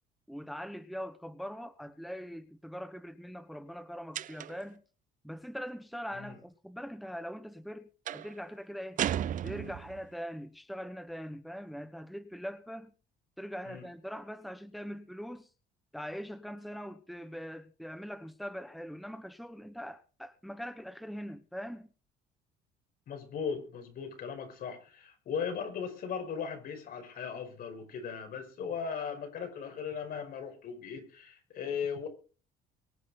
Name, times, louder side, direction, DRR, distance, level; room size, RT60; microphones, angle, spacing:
voice 1, 0.3-4.8 5.2-9.0 9.4-12.9 13.4-15.5 15.9-21.9, equal, ahead, 1.1 m, -42 dB
sound 1, 4.1-4.7 8.1-8.4 9.0-10.1, right 11 dB, 50° right, 0.6 m, -34 dB
voice 2, 23.1-32.1, left 6 dB, 60° left, 5.4 m, -38 dB
24.0 x 8.4 x 3.9 m
cardioid pair, 110°, 17 cm